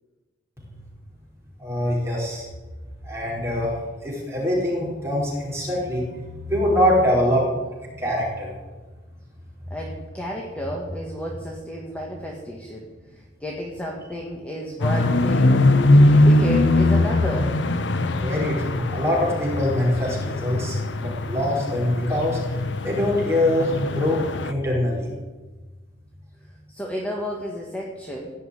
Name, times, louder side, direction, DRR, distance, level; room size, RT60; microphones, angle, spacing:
voice 1, 1.6-2.5 3.0-3.7 4.0-7.5 7.8-8.6 18.2-22.6 22.8-25.1, left 1 dB, 15° right, -5 dB, 4.9 m, -24 dB
voice 2, 9.7-12.9 13.1-15.8 16.1-17.5 26.7-28.3, equal, 5° left, -1 dB, 1.6 m, -32 dB
sound 1, 14.8-24.5, left 2 dB, 75° left, 0.8 m, -21 dB
16.5 x 5.7 x 9.7 m, 1.3 s
head